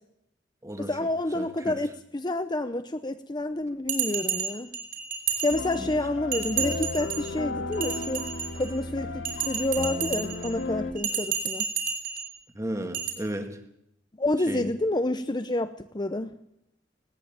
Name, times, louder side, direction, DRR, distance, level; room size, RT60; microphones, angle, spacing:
voice 1, 0.8-4.7 5.4-8.2 8.5-11.7 14.2-16.3, left 1 dB, 25° left, 10 dB, 0.7 m, -29 dB
voice 2, 1.3-1.8 5.8-5.9 12.5-13.6 14.5-14.7, right 1 dB, 15° right, 6 dB, 2.1 m, -34 dB
Bell, 3.9-5.9 6.3-7.3 7.7-8.7 9.2-10.5 11.0-12.3 12.9-13.1, right 7 dB, 50° right, 5.1 m, -31 dB
sound 1, 5.5-10.9, left 2 dB, 85° left, 2.5 m, -34 dB
19.0 x 18.5 x 8.9 m, 0.80 s
head